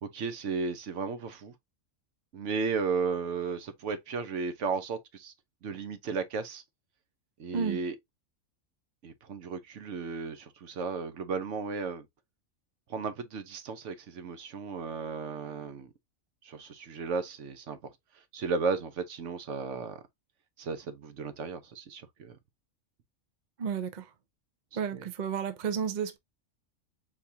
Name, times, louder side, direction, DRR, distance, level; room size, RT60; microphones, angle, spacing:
voice 1, 0.0-1.5 2.3-5.3 5.6-6.6 7.4-8.0 9.0-12.1 12.9-15.9 16.4-17.8 18.3-20.0 20.6-22.4 24.9-25.1, right 5 dB, 65° right, 1.0 m, -34 dB
voice 2, 23.6-24.1 24.8-26.2, right 7 dB, 45° right, 0.6 m, -32 dB
4.6 x 3.5 x 2.7 m
omnidirectional pair, 1.4 m